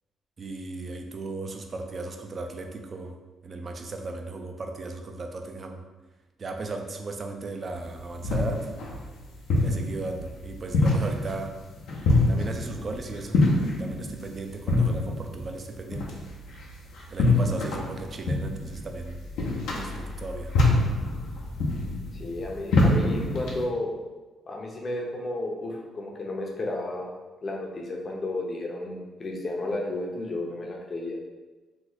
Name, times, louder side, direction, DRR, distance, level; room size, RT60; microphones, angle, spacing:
voice 1, 0.4-3.2 3.4-5.8 6.4-8.7 9.6-11.5 12.3-16.2 17.1-19.2 19.6-20.5, right 3 dB, 40° right, 4 dB, 0.4 m, -36 dB
sound 1, 7.7-23.6, left 2 dB, 80° left, 0.7 m, -26 dB
voice 2, 22.2-24.0 24.5-27.1 27.4-31.2, left 2 dB, 40° left, -1 dB, 0.7 m, -32 dB
3.1 x 2.1 x 3.9 m, 1.2 s
cardioid pair, 90°, 0 cm